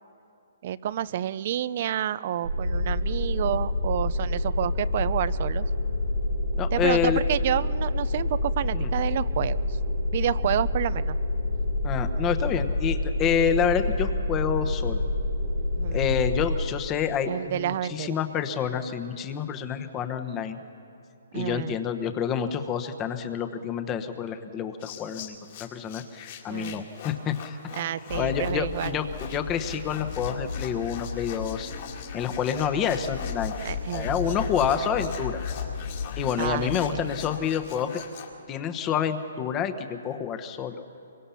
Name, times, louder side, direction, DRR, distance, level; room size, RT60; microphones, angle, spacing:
voice 1, 0.6-5.7 6.7-9.8 10.1-11.2 15.8-16.1 17.2-18.2 21.3-21.8 26.5-26.9 27.7-28.9 33.6-34.4 36.4-37.1, right 11 dB, 45° right, 17 dB, 0.6 m, -29 dB
sound 1, 2.4-16.5, left 2 dB, 85° right, 6.8 m, -27 dB
voice 2, 6.6-7.2 8.7-8.9 11.8-15.0 15.9-20.6 21.3-27.6 28.1-31.7 32.1-33.6 33.9-35.4 36.2-37.9 38.5-40.9, left 8 dB, 20° left, 8 dB, 1.1 m, -28 dB
sound 2, 24.8-38.3, left 8 dB, 40° left, 2.2 m, -43 dB
sound 3, 28.1-37.4, left 6 dB, 70° left, 4.9 m, -35 dB
24.5 x 23.5 x 5.8 m, 2.7 s
hypercardioid pair, 160°, 0 cm